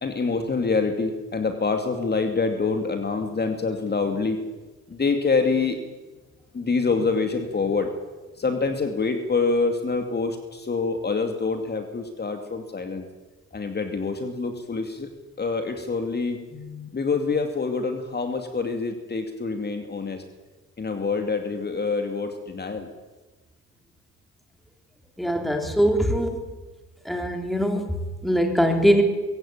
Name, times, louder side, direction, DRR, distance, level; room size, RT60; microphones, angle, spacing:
voice 1, 0.0-4.4 4.9-5.8 6.5-7.9 8.4-13.0 13.5-15.1 15.4-20.2 20.8-22.9, left 4 dB, 35° left, 6 dB, 2.6 m, -26 dB
voice 2, 25.2-26.4 27.0-29.0, equal, ahead, 4 dB, 3.8 m, -22 dB
22.5 x 16.5 x 8.7 m, 1.2 s
cardioid pair, 90°, 30 cm